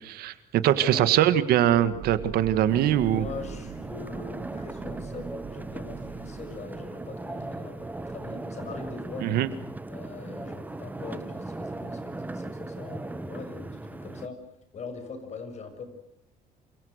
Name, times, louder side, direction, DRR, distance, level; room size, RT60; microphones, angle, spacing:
voice 1, 0.0-3.3 9.2-9.5, right 12 dB, 80° right, 12 dB, 1.8 m, -22 dB
sound 1, 1.6-11.0 11.3-11.4 11.7-12.0, right 6 dB, 50° right, 3.0 m, -44 dB
sound 2, 2.7-14.3, right 2 dB, 10° right, 1.1 m, -38 dB
voice 2, 3.0-9.3 9.9-14.4 14.7-15.8, left 4 dB, 45° left, 8 dB, 6.9 m, -41 dB
28.0 x 26.0 x 6.6 m, 0.75 s
cardioid pair, 115°, 16 cm